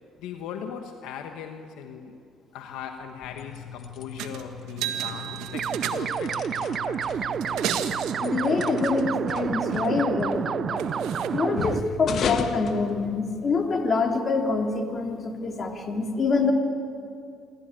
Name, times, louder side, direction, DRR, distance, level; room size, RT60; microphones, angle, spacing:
voice 1, 0.2-2.2 2.5-7.3, left 7 dB, 80° left, 5 dB, 1.3 m, -39 dB
sound 1, 3.1-13.6, left 6 dB, 60° left, 1.4 m, -36 dB
sound 2, 4.2-4.4 4.7-6.3 7.3-8.2 10.3-10.4 10.8-11.3 12.2-12.3, right 10 dB, 80° right, 1.6 m, -33 dB
sound 3, 5.5-11.8, right 7 dB, 50° right, 0.4 m, -29 dB
voice 2, 8.2-10.8 11.3-16.5, left 4 dB, 40° left, 2 dB, 3.3 m, -26 dB
27.0 x 13.0 x 9.0 m, 2.5 s
supercardioid pair, 80°, 0 cm